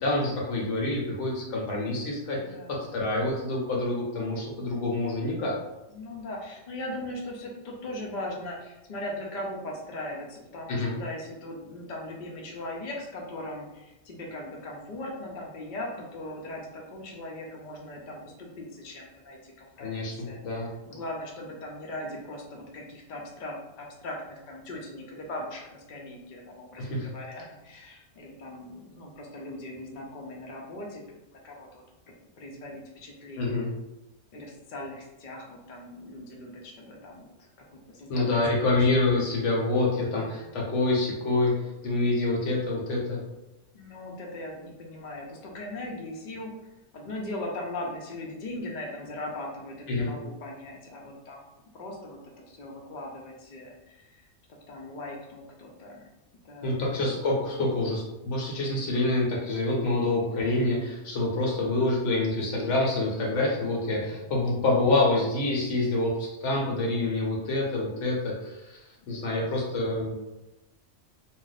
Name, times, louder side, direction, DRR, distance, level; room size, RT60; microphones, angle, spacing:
voice 1, 0.0-2.4 2.7-5.6 10.7-11.0 19.8-20.7 26.8-27.1 33.4-33.7 38.1-43.2 49.9-50.2 56.6-68.8 69.1-70.2, left 2 dB, 75° left, -2 dB, 1.1 m, -27 dB
voice 2, 2.4-2.8 5.9-19.9 20.3-31.0 31.4-33.7 34.3-38.7 40.0-40.5 43.7-46.5 46.9-51.4 51.7-52.2 52.5-54.2 54.7-56.1 56.4-56.8 59.9-60.6 63.9-64.3 69.0-69.5, left 1 dB, 50° left, -1 dB, 0.6 m, -39 dB
2.5 x 2.0 x 3.9 m, 0.97 s
omnidirectional pair, 1.3 m